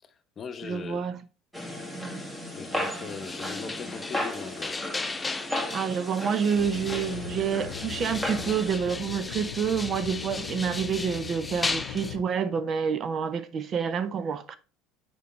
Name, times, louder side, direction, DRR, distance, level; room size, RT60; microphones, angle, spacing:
voice 1, 0.1-1.1 2.5-5.0, left 6 dB, 35° left, 0.9 m, -40 dB
voice 2, 0.6-1.2 1.9-2.2 5.7-14.6, right 7 dB, 45° right, 0.6 m, -28 dB
sound 1, 1.5-8.8, left 1 dB, 5° right, 1.6 m, -35 dB
sound 2, 2.8-7.3 7.7-12.2, left 3 dB, 15° left, 0.4 m, -36 dB
sound 3, 6.5-12.2, left 9 dB, 80° left, 0.6 m, -39 dB
6.7 x 4.7 x 3.1 m
supercardioid pair, 90°, 0 cm